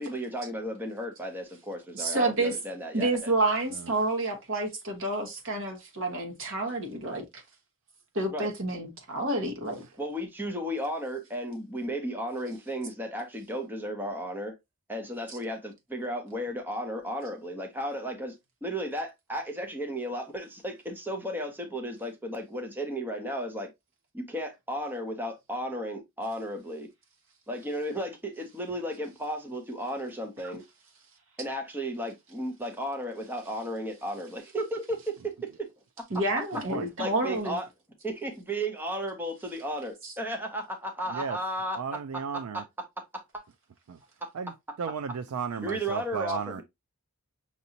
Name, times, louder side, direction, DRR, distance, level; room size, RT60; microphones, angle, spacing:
voice 1, 0.0-3.1 8.3-8.5 10.0-14.6 14.9-18.3 18.6-23.7 24.1-26.9 27.5-30.6 31.4-35.3 35.6-35.7 37.0-37.6 38.0-41.8 44.2-44.3 45.6-46.6, equal, 10° right, 0.7 m, -34 dB
voice 2, 1.9-2.6 2.9-7.2 8.1-9.8 15.3-15.4 36.1-37.6 40.0-40.1, right 2 dB, 60° right, 1.3 m, -29 dB
voice 3, 36.5-36.9 41.1-41.4 41.8-42.6 43.9-44.0 44.3-44.5 44.8-46.6, right 6 dB, 75° right, 0.4 m, -34 dB
5.9 x 2.7 x 2.7 m
head